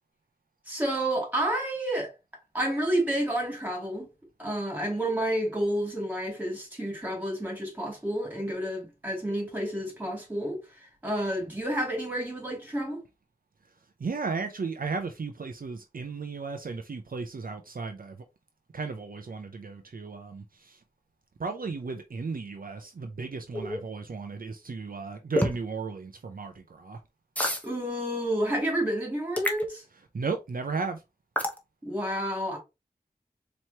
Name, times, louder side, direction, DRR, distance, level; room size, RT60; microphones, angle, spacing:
voice 1, 0.7-2.1 2.5-4.1 4.4-10.6 11.0-13.0 27.6-29.8 31.8-32.6, right 1 dB, 10° right, 2.3 m, -30 dB
voice 2, 14.0-18.2 18.7-20.8 21.4-27.0 30.1-31.0, right 4 dB, 65° right, 0.5 m, -35 dB
sound 1, 23.5-23.8 25.4-25.6 27.4-27.7 29.4-29.7 31.4-31.6, left 1 dB, 10° left, 0.9 m, -27 dB
4.4 x 3.1 x 2.8 m
wide cardioid pair, 65°, 16 cm